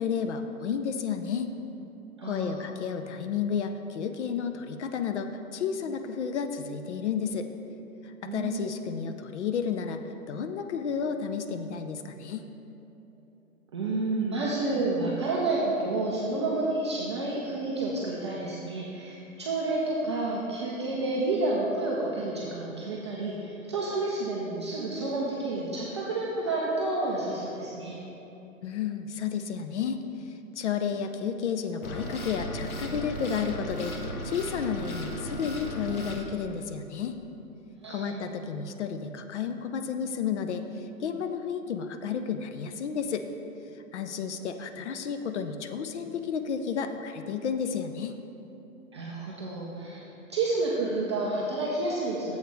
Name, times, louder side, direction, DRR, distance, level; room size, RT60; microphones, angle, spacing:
voice 1, 0.0-1.5 2.2-7.5 8.0-12.5 28.6-30.0 30.3-37.2 37.9-43.2 43.9-48.2, left 6 dB, 55° left, 7 dB, 0.5 m, -32 dB
voice 2, 2.2-2.7 8.2-8.7 13.7-28.0 37.8-38.2 48.9-50.0 50.3-52.4, right 2 dB, 20° right, -5 dB, 0.4 m, -30 dB
sound 1, 31.8-36.2, left 1 dB, 75° left, 1.1 m, -36 dB
7.2 x 4.7 x 6.0 m, 3.0 s
hypercardioid pair, 135°, 43 cm